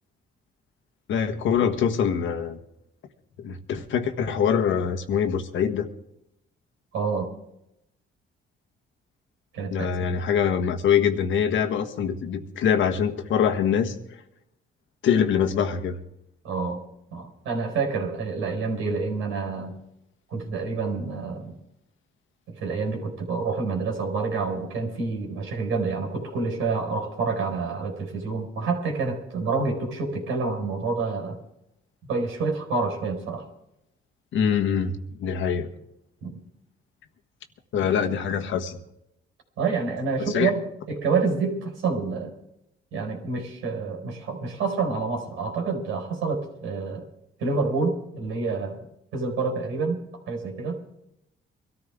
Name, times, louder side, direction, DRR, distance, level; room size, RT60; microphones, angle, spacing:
voice 1, 1.1-2.6 3.4-5.9 9.7-13.9 15.0-16.0 34.3-35.7 37.7-38.8 40.3-40.5, left 7 dB, 75° left, 8 dB, 1.4 m, -24 dB
voice 2, 6.9-7.3 9.5-10.2 16.4-16.8 17.1-19.7 20.3-21.6 22.5-31.4 32.1-33.5 36.2-36.4 39.6-40.6 40.9-42.3 42.9-47.1 47.4-48.8 49.1-50.0 50.3-50.8, right 4 dB, 90° right, 3 dB, 4.3 m, -28 dB
23.0 x 13.5 x 3.6 m, 0.83 s
cardioid pair, 90°, 20 cm